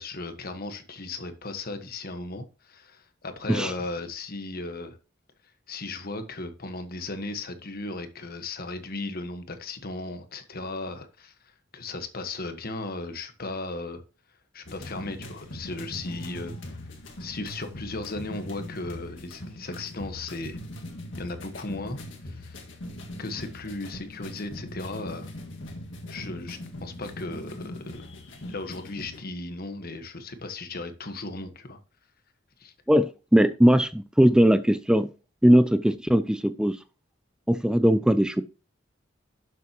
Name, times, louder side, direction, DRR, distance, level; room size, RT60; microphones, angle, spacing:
voice 1, 0.0-5.0 5.7-11.3 11.7-14.0 14.5-16.7 17.2-20.6 21.2-22.6 23.2-25.3 26.1-28.0 28.5-31.8 32.6-32.7, left 2 dB, 50° left, 8 dB, 1.4 m, -36 dB
sound 1, 14.7-29.2, left 1 dB, 70° left, 1.9 m, -40 dB
voice 2, 32.9-35.1 35.4-36.8 37.5-38.4, equal, 5° right, 13 dB, 0.4 m, -20 dB
11.5 x 7.5 x 3.0 m, 0.33 s
head